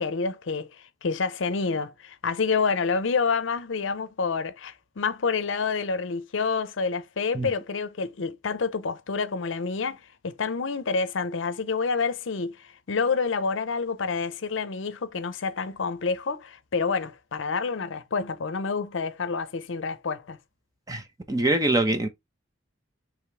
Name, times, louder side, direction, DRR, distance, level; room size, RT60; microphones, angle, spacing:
voice 1, 0.0-20.4, left 5 dB, 70° left, 0.6 m, -28 dB
voice 2, 20.9-22.1, right 2 dB, 20° right, 0.8 m, -24 dB
5.0 x 3.1 x 3.4 m
head